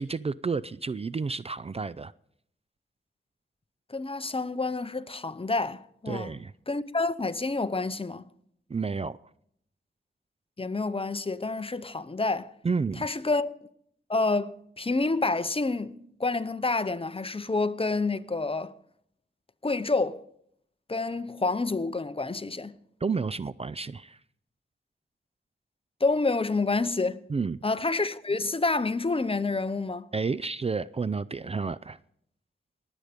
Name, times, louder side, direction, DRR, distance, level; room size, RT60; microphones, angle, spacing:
voice 1, 0.0-2.1 6.1-6.5 8.7-9.2 12.6-13.1 23.0-24.2 27.3-27.6 30.1-32.0, right 4 dB, 30° right, 0.4 m, -30 dB
voice 2, 3.9-6.3 6.7-8.3 10.6-12.5 13.0-13.5 14.1-18.7 19.6-20.2 20.9-22.7 26.0-27.2 27.6-30.0, left 3 dB, 30° left, 0.8 m, -28 dB
19.5 x 8.2 x 5.1 m
cardioid pair, 50°, 20 cm